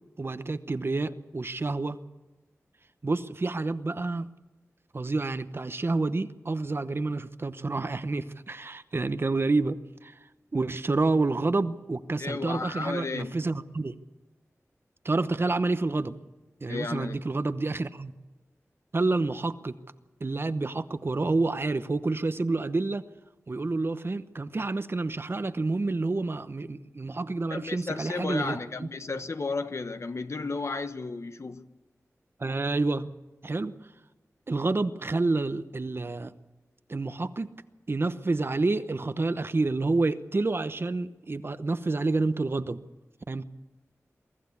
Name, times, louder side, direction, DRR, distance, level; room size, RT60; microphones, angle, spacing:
voice 1, 0.2-2.0 3.0-4.3 4.9-10.2 10.5-14.0 15.0-16.2 16.6-18.1 18.9-19.8 20.2-23.0 23.5-28.9 32.4-33.1 33.4-33.8 34.5-36.3 36.9-37.5 37.9-42.8 43.3-43.4, right 3 dB, 45° right, 0.9 m, -28 dB
voice 2, 12.2-13.4 16.7-17.2 27.5-31.7, left 3 dB, 60° left, 1.1 m, -33 dB
23.5 x 14.5 x 8.4 m
wide cardioid pair, 80°, 5 cm